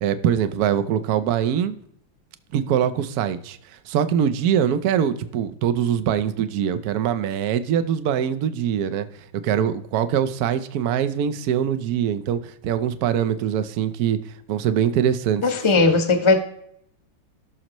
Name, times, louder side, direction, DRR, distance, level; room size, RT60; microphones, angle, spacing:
voice 1, 0.0-1.8 2.5-3.6 3.9-9.1 9.4-14.2 14.5-15.4 15.8-15.9, right 9 dB, 65° right, 11 dB, 1.1 m, -23 dB
voice 2, 15.4-16.4, left 3 dB, 20° left, 6 dB, 0.9 m, -18 dB
18.5 x 6.3 x 3.0 m, 0.71 s
omnidirectional pair, 2.1 m